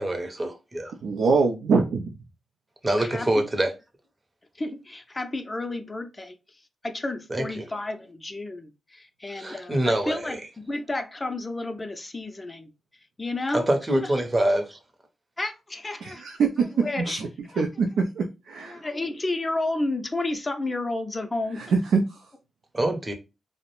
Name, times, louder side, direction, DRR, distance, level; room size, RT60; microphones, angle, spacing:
voice 1, 0.0-0.9 2.8-3.7 7.3-7.6 9.3-10.5 13.5-14.8 22.7-23.1, right 1 dB, 25° right, 0.6 m, -25 dB
voice 2, 1.0-2.1 16.0-17.3 17.6-18.8 21.6-22.0, right 4 dB, 85° right, 0.3 m, -24 dB
voice 3, 2.8-3.5 4.6-6.4 6.8-10.4 10.7-12.7 13.2-13.7 15.4-16.2 16.6-17.2 17.5-17.6 18.6-21.6, left 2 dB, 25° left, 0.4 m, -31 dB
2.4 x 2.0 x 2.9 m
cardioid pair, 80°, 0 cm